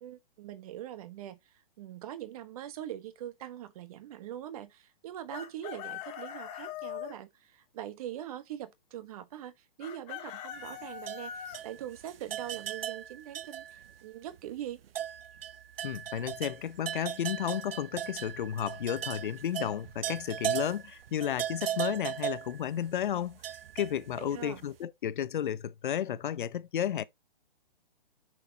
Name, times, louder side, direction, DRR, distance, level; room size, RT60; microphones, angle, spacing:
voice 1, 0.0-14.8 24.2-24.6, right 11 dB, 40° right, 1.2 m, -42 dB
Chicken rooster, 5.3-7.1 9.8-11.6, left 10 dB, 20° left, 1.3 m, -41 dB
sound 1, 10.5-14.0 14.3-14.4 14.9-24.5, right 10 dB, 75° right, 0.6 m, -38 dB
voice 2, 15.8-23.4 23.7-27.0, left 10 dB, 55° left, 0.7 m, -33 dB
7.4 x 6.3 x 2.8 m
hypercardioid pair, 150°, 29 cm